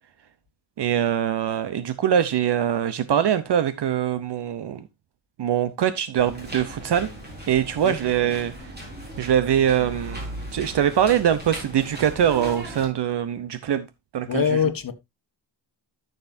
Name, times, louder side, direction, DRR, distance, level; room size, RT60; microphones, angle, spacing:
voice 1, 0.8-4.8 5.4-7.1 7.5-8.5 9.2-13.9 14.1-14.4, right 9 dB, 65° right, 0.8 m, -23 dB
sound 1, 6.2-12.9, equal, 20° right, 4.7 m, -37 dB
voice 2, 14.3-14.9, left 7 dB, 50° left, 1.3 m, -23 dB
13.0 x 6.7 x 2.6 m
wide cardioid pair, 160°, 45 cm